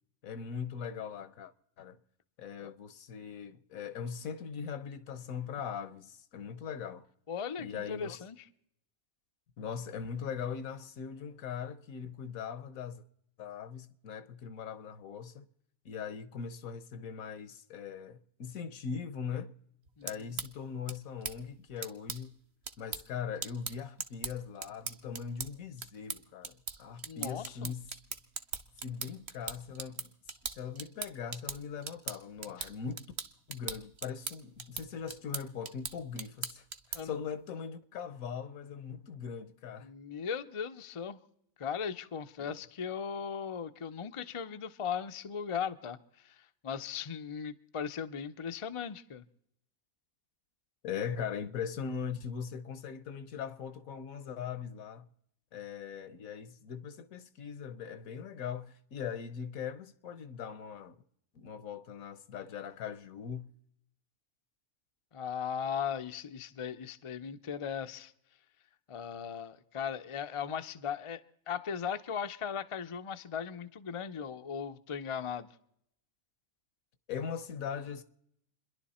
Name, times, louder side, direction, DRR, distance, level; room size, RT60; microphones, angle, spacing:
voice 1, 0.2-2.0 2.4-7.0 7.6-8.2 9.6-13.0 13.4-15.5 15.8-19.5 20.0-22.4 22.8-27.9 28.8-30.1 30.5-33.0 33.5-39.9 42.4-42.6 50.8-55.1 55.5-61.0 61.3-63.5 77.1-78.0, left 7 dB, 75° left, 1.3 m, -40 dB
voice 2, 7.3-8.4 20.0-20.3 27.1-27.7 32.6-32.7 36.9-37.1 39.8-41.2 41.6-46.0 46.2-49.2 65.1-68.1 68.9-75.5, left 7 dB, 40° left, 0.4 m, -38 dB
sound 1, 19.8-37.2, right 6 dB, 55° right, 1.1 m, -42 dB
28.5 x 11.0 x 4.2 m
omnidirectional pair, 1.5 m